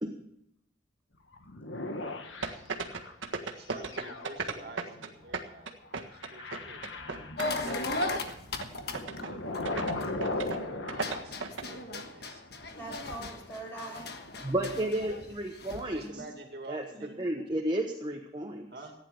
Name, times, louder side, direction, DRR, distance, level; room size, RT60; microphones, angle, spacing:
sound 1, 1.3-3.1 3.8-11.2, left 2 dB, 75° left, 1.5 m, -38 dB
sound 2, 2.4-5.1 5.3-7.7 8.0-8.3 8.6-8.7 8.9-9.3 9.6-9.9 10.2-10.6 10.9-11.6, right 4 dB, 85° right, 1.6 m, -35 dB
voice 1, 3.5-7.0 7.6-8.3 9.2-9.4 9.9-12.4 15.0-15.3 15.9-17.3 18.7-18.9, right 2 dB, 55° right, 3 dB, 2.2 m, -48 dB
sound 3, 7.4-10.5 10.9-16.0, left 2 dB, 55° left, 1.4 m, -37 dB
voice 2, 12.8-14.6 15.9-16.2 16.9-17.3, right 2 dB, 10° left, -1 dB, 5.1 m, -44 dB
voice 3, 14.4-16.0 16.7-16.8 17.2-18.7, right 1 dB, 20° right, 2 dB, 1.1 m, -32 dB
15.0 x 10.0 x 6.7 m, 0.80 s
head